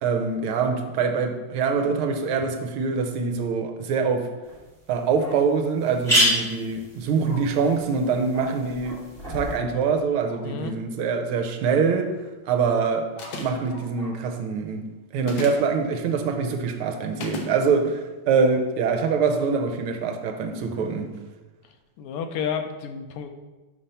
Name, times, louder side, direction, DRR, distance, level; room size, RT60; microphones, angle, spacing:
voice 1, 0.0-4.3 4.9-9.0 9.3-12.1 12.5-13.1 13.4-14.9 15.1-21.1, right 5 dB, 80° right, 5 dB, 1.5 m, -24 dB
sound 1, 4.5-4.6 5.1-5.2 5.4-5.5 5.8-9.6, equal, ahead, 1.9 m, -27 dB
Bark, 5.2-5.4 7.2-7.4 8.3-8.5 8.8-9.0 10.2-10.4 12.9-14.1, left 2 dB, 30° left, 1.6 m, -44 dB
voice 2, 10.4-10.8 22.0-23.3, left 7 dB, 90° left, 6 dB, 1.6 m, -30 dB
sound 2, 13.2-13.7 15.2-15.7 17.2-17.5, left 4 dB, 65° left, 1.5 m, -34 dB
5.7 x 4.3 x 5.4 m, 1.2 s
omnidirectional pair, 2.4 m